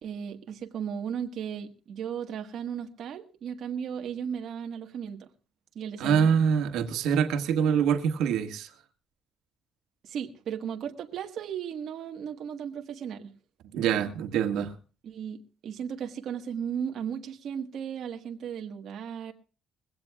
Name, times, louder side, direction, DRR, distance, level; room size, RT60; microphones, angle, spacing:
voice 1, 0.0-5.3 5.7-6.3 10.0-13.3 15.0-19.3, right 8 dB, 55° right, 1.4 m, -35 dB
voice 2, 6.0-8.7 13.7-14.7, right 7 dB, 85° right, 1.6 m, -25 dB
21.5 x 16.5 x 2.3 m
cardioid pair, 155°, 0 cm